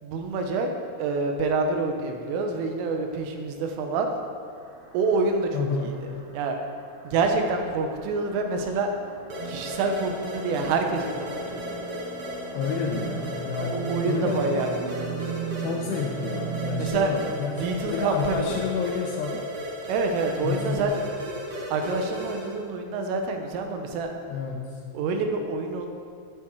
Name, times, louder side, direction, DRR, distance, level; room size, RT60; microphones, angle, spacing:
voice 1, 0.0-0.7 1.0-4.1 4.9-5.9 6.3-6.6 7.1-8.9 9.5-11.8 13.6-14.9 16.8-17.1 17.6-18.5 19.9-20.9 21.7-24.1 24.9-25.9, right 3 dB, 85° right, 4 dB, 3.8 m, -27 dB
sound 1, 4.5-16.9, right 8 dB, 40° right, 3.6 m, -37 dB
voice 2, 5.5-6.0 12.5-14.7 15.6-19.4 20.4-20.9 24.3-24.8, left 6 dB, 80° left, 1 dB, 2.5 m, -30 dB
sound 2, 9.3-22.6, equal, 70° right, 1.3 m, -36 dB
15.0 x 9.6 x 4.8 m, 2.3 s
omnidirectional pair, 5.6 m